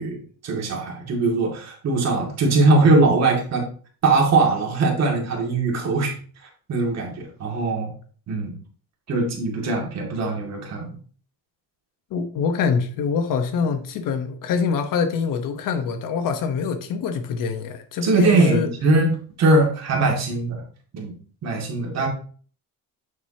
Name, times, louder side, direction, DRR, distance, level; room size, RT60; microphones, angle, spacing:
voice 1, 0.0-3.7 4.0-6.1 6.4-7.9 8.3-8.6 9.1-10.9 18.0-20.6 20.9-21.1 21.4-22.1, right 3 dB, 45° right, 2.4 m, -21 dB
voice 2, 12.1-18.7, left 6 dB, 65° left, 1.1 m, -25 dB
9.0 x 6.5 x 2.9 m
cardioid pair, 165°, 36 cm